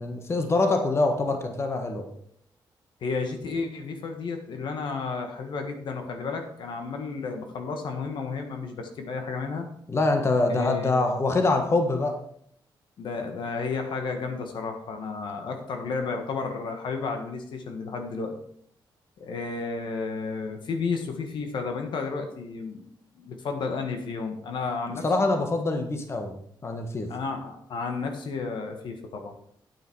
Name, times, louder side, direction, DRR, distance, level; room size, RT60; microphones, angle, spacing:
voice 1, 0.0-2.1 9.9-12.2 24.9-27.1, left 2 dB, 30° left, 5 dB, 1.4 m, -25 dB
voice 2, 3.0-9.7 10.5-10.9 13.0-18.4 19.2-22.9 23.2-25.3 27.1-29.3, left 4 dB, 70° left, 5 dB, 1.6 m, -32 dB
9.1 x 9.0 x 4.7 m, 0.67 s
cardioid pair, 120°, 8 cm